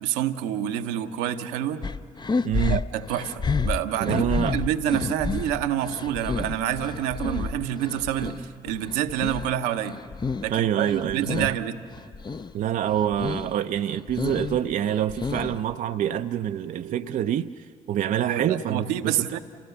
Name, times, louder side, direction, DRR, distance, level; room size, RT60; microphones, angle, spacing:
voice 1, 0.0-1.8 2.7-10.0 10.4-11.8 18.2-19.4, right 10 dB, 80° right, 0.8 m, -28 dB
sound 1, 1.8-8.4 8.8-10.6 10.8-11.6 11.9-12.5 12.9-13.5 13.9-15.7, left 4 dB, 25° left, 0.6 m, -30 dB
voice 2, 2.4-2.8 4.0-4.6 10.5-11.5 12.5-19.4, right 10 dB, 55° right, 0.5 m, -26 dB
sound 2, 3.6-3.8 4.2-4.5 4.8-5.6 6.0-6.2 6.7-6.9 7.3-7.5 8.0-8.2 8.6-8.8 9.4-9.7, left 2 dB, 80° left, 2.9 m, -43 dB
28.5 x 16.0 x 6.8 m
hypercardioid pair, 45°, 16 cm